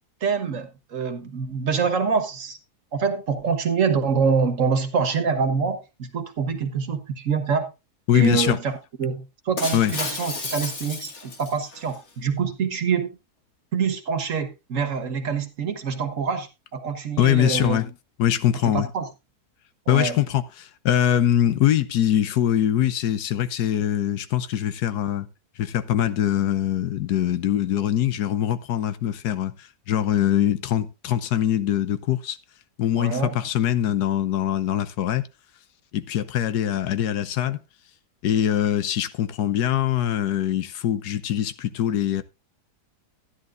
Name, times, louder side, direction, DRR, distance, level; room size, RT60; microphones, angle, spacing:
voice 1, 0.2-2.6 2.9-7.7 8.1-13.1 13.7-17.8 18.6-19.1 19.9-20.2 33.0-33.3, right 5 dB, 55° right, 1.5 m, -25 dB
voice 2, 8.1-8.6 9.7-10.0 17.2-17.9 18.2-18.9 19.9-25.3 25.6-32.4 32.8-35.2 35.9-37.6 38.2-42.2, left 11 dB, 90° left, 1.3 m, -23 dB
Shatter, 9.6-12.0, left 3 dB, 50° left, 1.9 m, -32 dB
13.0 x 10.5 x 2.5 m
omnidirectional pair, 1.6 m